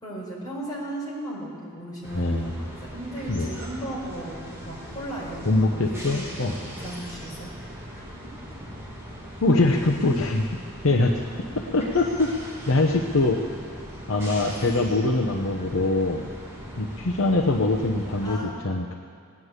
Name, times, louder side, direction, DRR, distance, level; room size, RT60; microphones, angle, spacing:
voice 1, 0.0-7.5 7.9-8.0 11.2-11.3 18.2-18.6, right 1 dB, 20° left, -5 dB, 4.5 m, -36 dB
sound 1, 2.0-18.4, equal, 10° right, 2.4 m, -40 dB
voice 2, 2.1-2.6 3.3-3.5 5.4-6.6 9.4-10.5 10.8-11.3 11.7-13.4 14.1-16.2 16.8-19.0, left 2 dB, 65° left, 2 dB, 0.9 m, -23 dB
18.0 x 9.4 x 8.1 m, 2.2 s
head